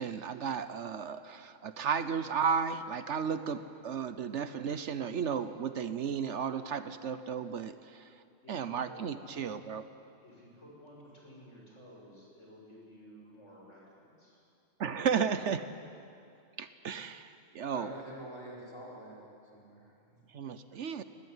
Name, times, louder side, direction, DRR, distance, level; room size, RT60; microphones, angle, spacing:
voice 1, 0.0-7.8 8.5-9.8 14.8-15.7 16.6-17.9 20.3-21.0, right 6 dB, 65° right, 12 dB, 1.1 m, -34 dB
voice 2, 8.4-9.5 10.2-14.4, equal, 70° left, -3 dB, 6.7 m, -54 dB
voice 3, 17.7-19.2 19.5-20.3, equal, 20° left, -5 dB, 5.3 m, -46 dB
21.5 x 19.0 x 9.7 m, 2.5 s
omnidirectional pair, 1.3 m